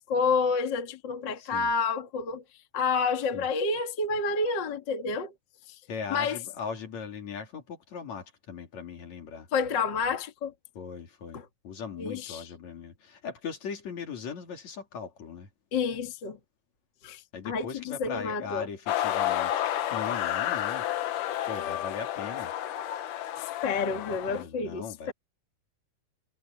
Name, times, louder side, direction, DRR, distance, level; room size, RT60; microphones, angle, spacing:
voice 1, 0.0-2.4 2.7-5.3 5.7-5.8 6.1-6.4 9.5-10.5 11.3-11.5 12.0-12.5 15.7-16.4 17.0-18.7 23.4-25.1, left 4 dB, 40° left, 2.2 m, -29 dB
voice 2, 1.4-1.7 3.3-3.5 5.9-9.5 10.8-15.5 17.3-20.9 21.5-22.5 23.8-25.1, left 6 dB, 55° left, 3.8 m, -39 dB
sound 1, 18.9-24.4, left 12 dB, 75° left, 2.7 m, -31 dB
omnidirectional pair, 3.8 m